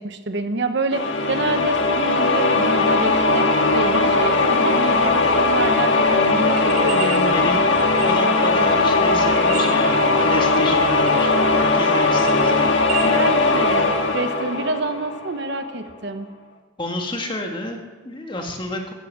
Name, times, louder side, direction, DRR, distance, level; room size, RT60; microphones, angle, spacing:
voice 1, 0.0-7.6 13.0-16.3, right 2 dB, 55° right, 8 dB, 1.1 m, -27 dB
sound 1, 0.9-15.5, left 3 dB, 60° left, 1.6 m, -19 dB
sound 2, 6.6-7.2 7.7-8.4 9.3-10.1 10.5-10.6 11.1-11.6 11.9-13.1, right 10 dB, 90° right, 2.0 m, -32 dB
voice 2, 7.3-7.7 8.0-12.7 16.8-18.9, left 1 dB, 25° left, 3 dB, 1.7 m, -30 dB
14.5 x 13.5 x 7.5 m, 1.3 s
head